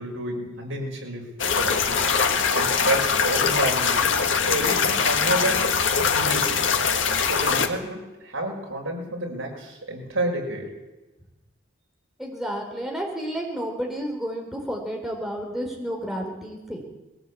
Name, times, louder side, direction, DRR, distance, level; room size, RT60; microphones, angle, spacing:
voice 1, 0.0-2.1 2.5-4.1 4.4-5.7 6.0-6.6 7.3-10.7, right 1 dB, 75° right, 1 dB, 6.0 m, -30 dB
sound 1, 1.4-7.7, left 6 dB, 65° left, 2.0 m, -22 dB
voice 2, 12.2-16.8, equal, ahead, 0 dB, 4.0 m, -31 dB
21.5 x 17.5 x 8.5 m, 1.1 s
head